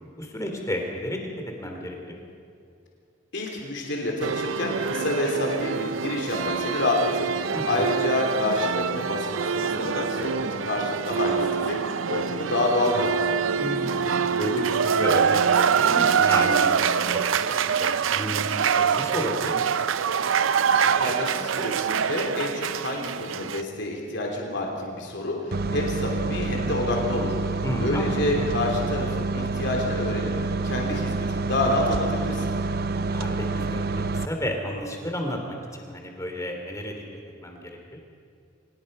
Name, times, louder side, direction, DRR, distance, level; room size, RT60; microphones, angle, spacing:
voice 1, 0.2-1.2 1.6-2.2 7.5-7.9 13.6-14.0 14.2-19.5 27.6-28.1 28.4-28.5 33.1-37.0 37.4-37.6 37.9-38.0, left 1 dB, 15° left, 2 dB, 3.0 m, -32 dB
voice 2, 3.3-13.2 20.7-30.3 30.6-32.5, left 2 dB, 60° left, 0 dB, 3.4 m, -28 dB
sound 1, 4.2-23.6, right 7 dB, 85° right, 0.5 m, -25 dB
sound 2, 25.5-34.3, right 3 dB, 50° right, 0.7 m, -28 dB
25.0 x 19.5 x 5.5 m, 2.4 s
head